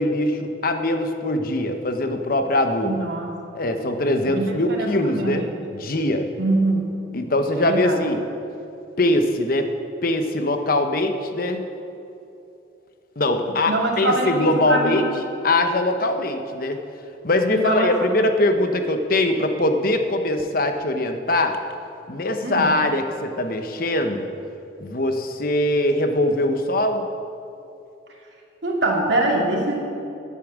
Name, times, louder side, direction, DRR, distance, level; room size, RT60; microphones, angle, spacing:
voice 1, 0.0-3.0 3.5-5.5 5.8-6.3 7.1-8.2 9.0-9.7 10.0-11.6 13.2-15.0 15.4-16.8 17.2-21.6 22.1-24.3 24.8-27.0, left 1 dB, 50° left, 6 dB, 0.9 m, -22 dB
voice 2, 2.8-3.3 4.3-5.6 6.4-6.9 7.6-8.0 13.7-15.0 17.5-17.9 22.4-22.7 28.6-29.8, right 2 dB, 70° right, -1 dB, 2.2 m, -23 dB
10.5 x 8.4 x 7.4 m, 2.8 s
head